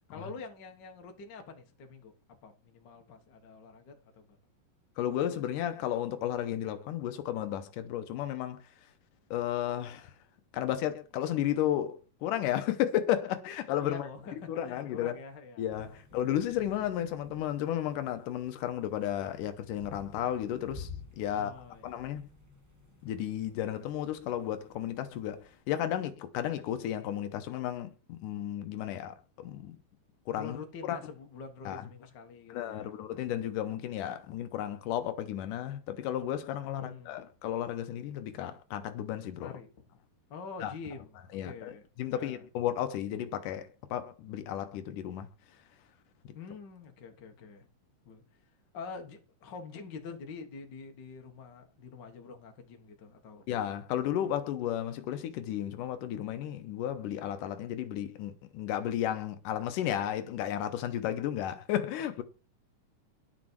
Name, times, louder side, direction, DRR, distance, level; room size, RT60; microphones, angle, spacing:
voice 1, 0.1-2.1 2.4-4.4 13.8-15.6 16.1-16.2 21.3-22.0 30.3-33.3 36.8-37.2 39.4-39.7 40.3-42.4 46.3-47.7 48.0-48.2 48.7-53.5, left 4 dB, 45° left, 1.5 m, -46 dB
voice 2, 5.0-8.6 9.3-10.1 10.5-14.1 14.5-15.2 15.6-20.9 21.2-21.5 21.8-22.3 23.0-29.8 30.3-30.6 30.9-31.0 31.7-31.9 32.5-39.6 40.6-40.7 41.3-45.3 46.3-46.4 53.5-62.2, left 11 dB, 80° left, 2.3 m, -33 dB
sound 1, 15.7-25.6, left 4 dB, 10° right, 0.8 m, -52 dB
11.0 x 6.2 x 4.5 m
omnidirectional pair, 3.8 m